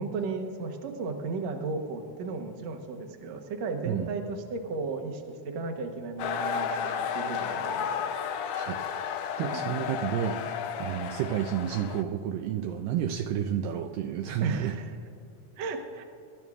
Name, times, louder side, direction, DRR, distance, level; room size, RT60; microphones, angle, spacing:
voice 1, 0.0-7.9 9.3-9.8 14.4-15.0 15.6-16.0, right 4 dB, 70° right, 4 dB, 1.6 m, -35 dB
sound 1, 6.2-12.0, left 7 dB, 80° left, 1.9 m, -32 dB
voice 2, 9.4-14.7, right 9 dB, 90° right, 5 dB, 1.9 m, -31 dB
24.0 x 12.5 x 2.4 m, 2.5 s
omnidirectional pair, 4.5 m